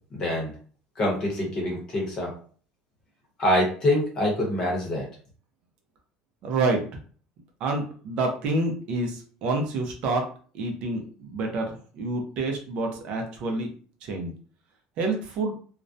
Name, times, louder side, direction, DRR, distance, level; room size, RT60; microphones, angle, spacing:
voice 1, 0.1-0.5 1.0-2.3 3.4-5.1, left 1 dB, 30° left, -1 dB, 0.8 m, -25 dB
voice 2, 6.4-6.8 7.6-10.3 10.5-13.7 14.0-14.3 15.0-15.5, right 2 dB, 50° right, 2 dB, 0.5 m, -28 dB
2.3 x 2.1 x 2.6 m, 0.43 s
cardioid pair, 170°, 2 cm